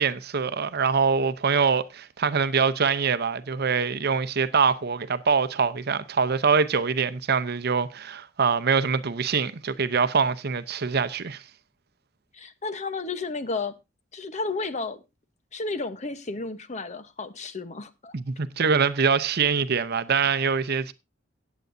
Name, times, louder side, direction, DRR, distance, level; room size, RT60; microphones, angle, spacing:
voice 1, 0.0-11.4 18.1-20.9, right 5 dB, 55° right, 0.7 m, -24 dB
voice 2, 12.3-13.7 14.1-15.0 15.5-18.1, left 3 dB, 35° left, 1.0 m, -32 dB
17.0 x 8.3 x 2.6 m
head